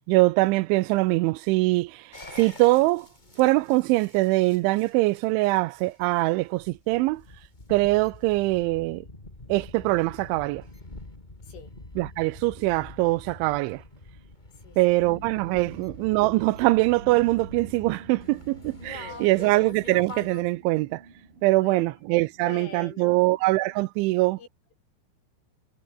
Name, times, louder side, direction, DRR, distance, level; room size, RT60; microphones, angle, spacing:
voice 1, 0.1-3.1 3.4-7.2 7.7-9.1 9.5-10.6 12.0-13.8 14.8-21.0 21.4-24.4, right 20 dB, 80° right, 3.0 m, -23 dB
sound 1, 2.1-20.4, left 2 dB, 10° left, 2.6 m, -46 dB
sound 2, 15.0-23.8, right 4 dB, 45° right, 9.0 m, -46 dB
voice 2, 18.9-19.5 21.5-22.0 22.4-23.3 24.4-24.7, left 6 dB, 85° left, 8.9 m, -45 dB
omnidirectional pair, 5.5 m